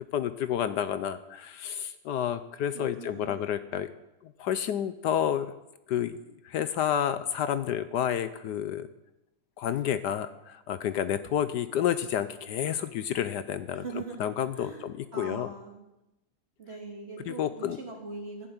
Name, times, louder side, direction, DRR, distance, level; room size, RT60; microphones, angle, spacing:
voice 1, 0.1-3.9 4.2-5.5 5.9-6.2 6.4-8.9 9.6-15.5 17.3-17.8, left 9 dB, 70° left, 13 dB, 1.2 m, -30 dB
voice 2, 2.7-3.5 13.7-14.2 14.6-14.8 15.1-15.8 16.6-18.5, right 4 dB, 35° right, 0 dB, 3.2 m, -41 dB
13.5 x 7.6 x 9.6 m, 0.93 s
omnidirectional pair, 1.9 m